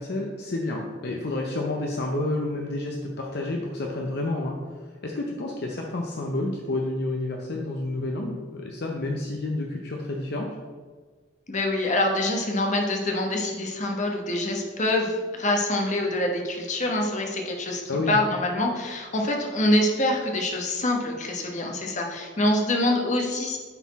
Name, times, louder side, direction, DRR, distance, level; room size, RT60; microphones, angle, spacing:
voice 1, 0.0-10.6 17.9-18.2, left 2 dB, 55° left, 0 dB, 0.7 m, -30 dB
voice 2, 11.5-17.8 18.1-23.6, left 1 dB, 40° left, 2 dB, 1.1 m, -25 dB
9.9 x 4.1 x 4.1 m, 1.5 s
head